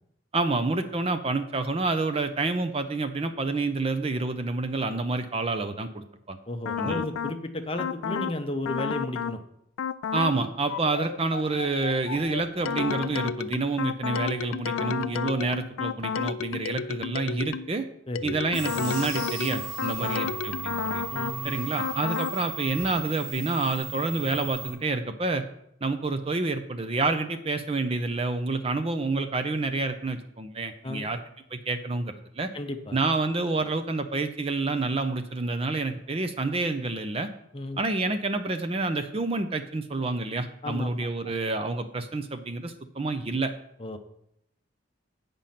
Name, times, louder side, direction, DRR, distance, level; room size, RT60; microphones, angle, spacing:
voice 1, 0.3-6.4 6.8-7.0 10.1-17.9 18.2-21.0 21.4-25.4 25.8-31.2 31.5-32.5 32.9-37.3 37.8-43.5, right 3 dB, 30° right, 8 dB, 0.5 m, -28 dB
voice 2, 6.5-9.4 18.1-18.4 20.0-20.3 21.1-21.5 30.8-31.1 32.5-33.0 37.5-37.8 40.6-41.1 43.8-44.0, left 1 dB, 25° left, 6 dB, 0.7 m, -33 dB
sound 1, 6.7-7.4 7.8-8.4 8.7-9.4 9.8-10.4 10.7-17.7 18.2-21.4 21.8-22.4, left 7 dB, 90° left, 0.3 m, -31 dB
sound 2, 18.5-24.7, right 4 dB, 50° right, 3.6 m, -37 dB
8.8 x 5.2 x 5.8 m, 0.77 s
head